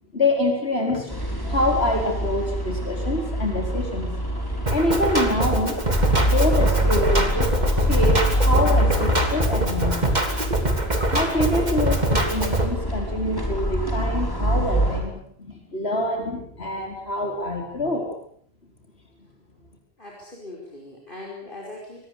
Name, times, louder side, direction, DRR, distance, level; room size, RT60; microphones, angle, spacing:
voice 1, 0.1-5.8 6.2-10.1 11.1-18.1, left 1 dB, 85° left, 2 dB, 5.1 m, -26 dB
sound 1, 1.1-15.0, equal, 20° left, 6.3 m, -25 dB
Drum kit, 4.7-12.7, right 1 dB, 45° right, 3.4 m, -24 dB
voice 2, 20.0-22.1, left 2 dB, 55° left, -1 dB, 5.6 m, -40 dB
25.5 x 20.0 x 8.5 m, 0.64 s
omnidirectional pair, 1.0 m